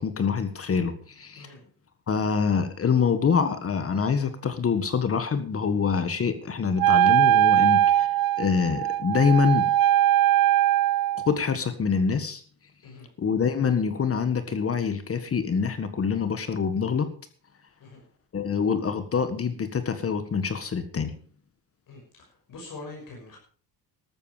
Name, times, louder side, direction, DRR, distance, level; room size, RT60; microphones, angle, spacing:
voice 1, 0.0-1.5 2.1-8.1 8.4-9.7 11.3-12.4 13.2-17.1 18.3-21.1, left 6 dB, 35° left, 10 dB, 1.7 m, -25 dB
Wind instrument woodwind instrument, 6.8-11.3, right 12 dB, 60° right, 0.6 m, -21 dB
voice 2, 21.9-23.4, left 3 dB, 55° left, 0 dB, 6.1 m, -44 dB
13.5 x 13.0 x 5.1 m, 0.42 s
cardioid pair, 125°, 39 cm